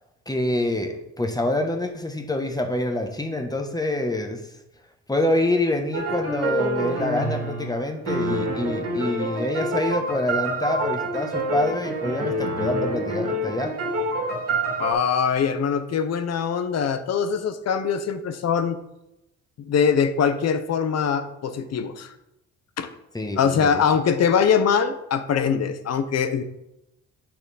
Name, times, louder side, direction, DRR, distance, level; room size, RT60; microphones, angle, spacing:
voice 1, 0.3-4.4 5.1-13.7 23.1-23.8, left 1 dB, 15° left, 5 dB, 1.2 m, -26 dB
sound 1, 5.9-14.9, right 1 dB, 55° right, 2.5 m, -27 dB
voice 2, 14.8-18.8 19.6-22.1 22.8-22.9 23.4-26.4, left 7 dB, 55° left, 10 dB, 0.9 m, -22 dB
8.8 x 6.0 x 4.1 m, 0.87 s
cardioid pair, 90°, 30 cm